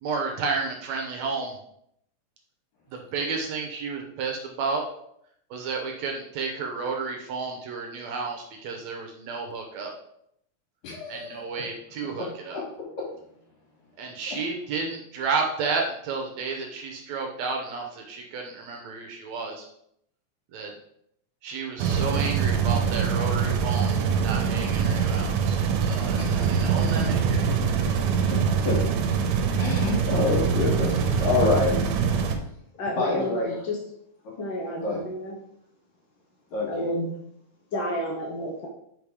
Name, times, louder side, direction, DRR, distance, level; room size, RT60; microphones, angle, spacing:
voice 1, 0.0-1.6 2.9-4.8 5.5-9.9 11.1-12.6 14.0-19.7 20.5-20.7 21.4-27.8, right 4 dB, 70° right, 2 dB, 2.0 m, -32 dB
voice 2, 10.8-11.7 26.1-26.3 28.3-28.4 28.6-28.8 29.6-31.8 32.8-33.5 34.8-35.0 36.5-36.9, left 3 dB, 65° left, -3 dB, 3.6 m, -27 dB
sound 1, 21.8-32.4, right 6 dB, 90° right, 2.3 m, -24 dB
voice 3, 32.8-33.8 34.4-35.4 36.7-37.1 37.7-38.7, equal, 85° left, -1 dB, 1.0 m, -30 dB
5.3 x 5.2 x 4.8 m, 0.73 s
omnidirectional pair, 3.6 m